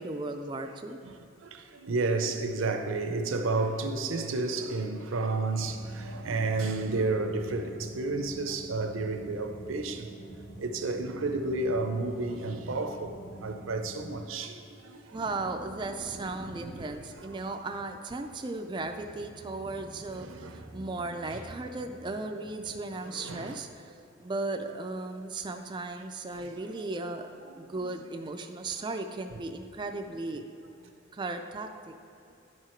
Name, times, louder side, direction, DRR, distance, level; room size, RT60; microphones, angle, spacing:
voice 1, 0.0-1.0 15.1-23.9 24.2-27.3 27.6-30.4 31.1-31.9, right 2 dB, 25° right, 0.3 m, -36 dB
voice 2, 1.0-10.1 10.6-15.2 16.8-16.9 17.2-17.4 20.1-20.8 21.3-21.4 23.0-23.6 26.3-26.5 27.4-27.9 30.1-30.2, right 3 dB, 80° right, 0.6 m, -32 dB
sound 1, 5.5-14.2, right 1 dB, 25° left, 0.7 m, -46 dB
10.5 x 4.7 x 4.4 m
head